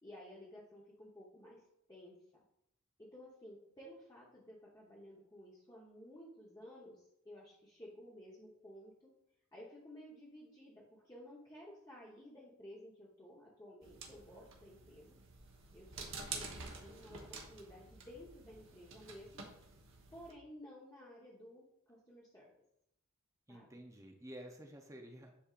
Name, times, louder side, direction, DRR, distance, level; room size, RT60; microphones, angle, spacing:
voice 1, 0.0-1.6 1.9-2.4 3.0-9.1 9.5-15.2 15.7-19.5 20.1-22.5 23.5-23.8, equal, 15° left, -5 dB, 1.0 m, -55 dB
sound 1, 13.8-20.3, right 4 dB, 60° right, 1.2 m, -49 dB
voice 2, 23.5-25.3, equal, 15° right, 3 dB, 0.6 m, -51 dB
10.0 x 4.4 x 2.5 m, 0.78 s
head